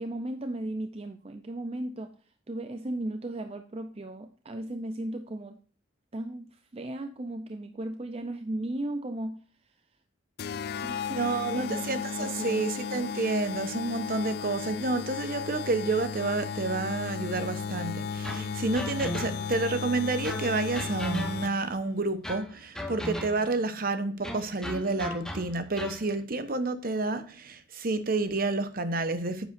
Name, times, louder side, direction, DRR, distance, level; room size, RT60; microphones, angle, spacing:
voice 1, 0.0-2.1 2.5-5.6 6.1-9.4 10.5-11.9 12.2-12.7, right 1 dB, 30° right, 0.5 m, -36 dB
sound 1, 10.4-21.8, left 6 dB, 55° left, 0.3 m, -35 dB
voice 2, 11.1-29.5, right 3 dB, 50° right, 1.0 m, -29 dB
sound 2, 18.2-19.6 20.2-21.7 22.2-23.6 24.2-26.1, equal, 5° left, 1.0 m, -37 dB
10.0 x 8.1 x 2.6 m
head